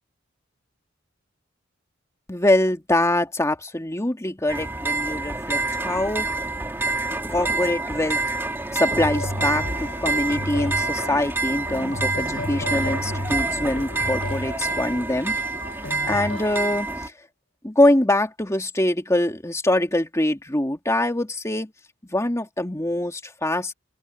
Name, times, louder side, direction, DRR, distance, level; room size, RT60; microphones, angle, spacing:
voice 1, 2.3-6.3 7.1-8.2 8.7-15.4 16.1-17.1 17.6-21.7 22.1-23.7, left 1 dB, 15° left, 2.2 m, -24 dB
sound 1, 4.5-17.1, right 3 dB, 10° right, 2.3 m, -27 dB
sound 2, 8.9-16.8, left 1 dB, 70° left, 2.7 m, -33 dB
open air
head